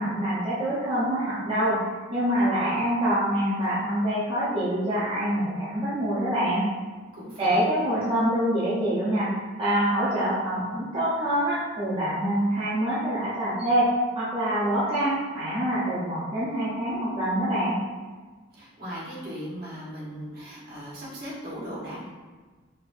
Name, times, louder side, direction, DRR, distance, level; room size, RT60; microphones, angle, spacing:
voice 1, 0.0-1.8 2.1-6.7 7.4-9.3 9.6-13.9 14.2-17.8, right 1 dB, 30° right, -11 dB, 0.7 m, -25 dB
voice 2, 7.1-7.7 18.5-22.1, equal, 55° right, -8 dB, 1.3 m, -38 dB
4.3 x 2.5 x 2.5 m, 1.4 s
head